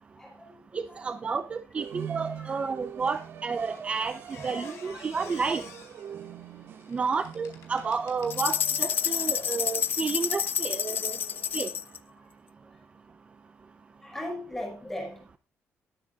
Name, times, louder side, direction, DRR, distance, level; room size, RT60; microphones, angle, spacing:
voice 1, 0.2-1.0 1.3-1.4 2.4-2.6 4.5-4.8 11.0-11.1 14.0-15.4, left 1 dB, 10° left, 5.4 m, -39 dB
voice 2, 0.7-5.6 6.9-11.2 11.5-11.7, right 5 dB, 25° right, 0.6 m, -31 dB
sound 1, 1.8-12.0, right 9 dB, 55° right, 1.8 m, -44 dB
Squeak, 3.1-9.2 9.8-10.0, left 8 dB, 70° left, 4.3 m, -51 dB
sound 2, 8.3-12.0, left 9 dB, 45° left, 0.6 m, -29 dB
20.0 x 9.8 x 2.5 m
cardioid pair, 165°, 5 cm